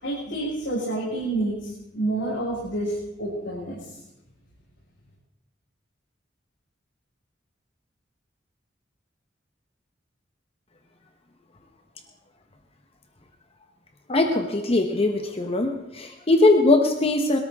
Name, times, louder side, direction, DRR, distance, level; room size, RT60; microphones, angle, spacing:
voice 1, 0.0-3.9, right 2 dB, 80° left, -8 dB, 5.8 m, -29 dB
voice 2, 14.1-17.4, left 2 dB, 35° left, 4 dB, 1.1 m, -21 dB
22.0 x 13.5 x 3.7 m, 0.91 s
head